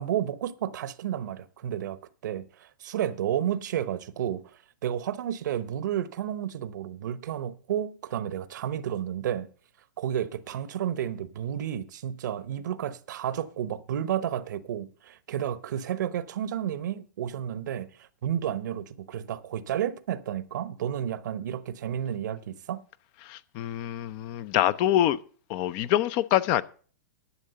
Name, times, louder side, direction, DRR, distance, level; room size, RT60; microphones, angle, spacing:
voice 1, 0.0-9.5 10.0-22.8, right 10 dB, 70° right, 0.9 m, -31 dB
voice 2, 23.2-25.2 25.5-26.6, left 12 dB, 40° left, 0.6 m, -25 dB
11.0 x 7.2 x 6.7 m
hypercardioid pair, 125°, 10 cm